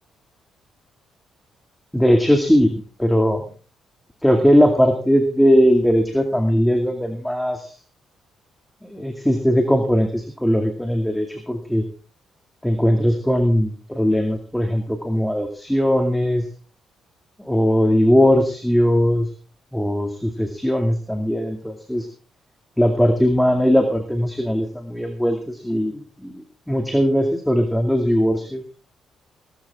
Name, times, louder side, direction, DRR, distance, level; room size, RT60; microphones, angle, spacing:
voice 1, 1.9-3.4 4.2-7.7 8.8-11.8 12.6-16.4 17.4-19.3 19.7-22.1 22.8-28.6, equal, 5° left, 5 dB, 2.4 m, -19 dB
18.5 x 13.0 x 3.7 m, 0.37 s
cardioid pair, 90°, 0 cm